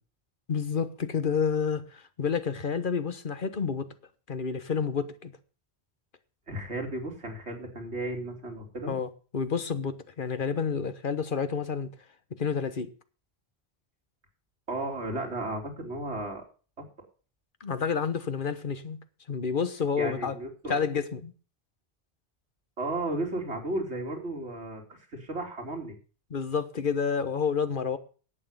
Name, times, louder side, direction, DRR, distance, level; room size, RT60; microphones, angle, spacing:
voice 1, 0.5-3.9 4.3-5.3 8.9-11.9 12.4-12.9 17.6-19.0 19.3-20.3 20.7-21.3 26.3-28.0, left 6 dB, 50° left, 1.3 m, -29 dB
voice 2, 6.5-8.9 14.7-16.4 16.8-16.9 20.0-20.8 22.8-26.0, right 2 dB, 90° right, 3.4 m, -34 dB
11.0 x 8.6 x 6.8 m
omnidirectional pair, 1.1 m